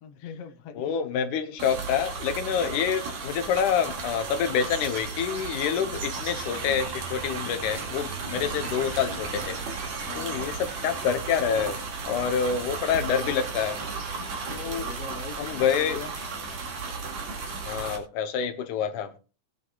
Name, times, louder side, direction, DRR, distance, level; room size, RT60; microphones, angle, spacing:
voice 1, 0.0-0.9 2.5-2.8 5.8-6.0 8.3-8.5 10.1-10.5 14.4-16.1, left 8 dB, 60° left, 1.7 m, -41 dB
voice 2, 0.8-9.6 10.2-13.8 14.5-14.9 15.4-16.0 17.6-19.2, left 7 dB, 80° left, 2.4 m, -27 dB
sound 1, 1.6-18.0, right 4 dB, 60° right, 3.3 m, -34 dB
19.0 x 9.5 x 2.4 m
omnidirectional pair, 3.5 m